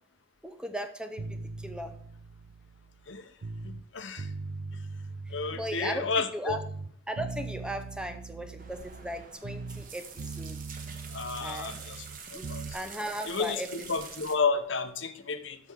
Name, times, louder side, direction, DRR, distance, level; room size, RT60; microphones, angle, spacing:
voice 1, 0.4-1.9 5.5-6.6 7.1-10.6 11.4-11.8 12.3-13.7, equal, 5° right, 8 dB, 0.7 m, -37 dB
sound 1, 1.2-3.9 4.2-6.2 6.5-9.9 10.2-12.8, right 3 dB, 80° right, 0.5 m, -40 dB
voice 2, 3.6-4.3 5.3-6.6 11.1-12.0 12.3-12.6 13.3-13.6 13.9-15.6, left 4 dB, 65° left, 10 dB, 0.9 m, -31 dB
sound 2, 8.6-14.4, right 6 dB, 45° right, 1.3 m, -46 dB
8.3 x 6.1 x 6.0 m, 0.65 s
head